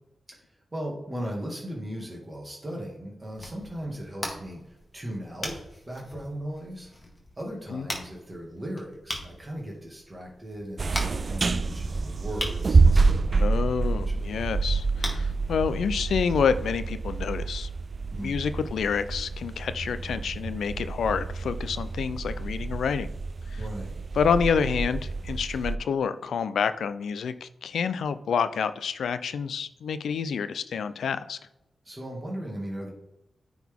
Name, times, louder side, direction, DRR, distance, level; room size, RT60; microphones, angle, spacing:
voice 1, 0.7-6.9 7.4-13.6 14.1-14.4 18.1-18.7 23.6-24.0 31.8-32.9, equal, 25° right, -2 dB, 1.9 m, -38 dB
sound 1, 3.2-16.5, left 1 dB, 25° left, 1.7 m, -41 dB
sound 2, 10.8-25.8, right 4 dB, 50° right, 0.4 m, -27 dB
voice 2, 13.4-17.7 18.2-23.1 24.2-31.4, left 6 dB, 90° left, 12 dB, 0.4 m, -28 dB
9.3 x 3.9 x 3.6 m, 0.89 s
cardioid pair, 75°, 0 cm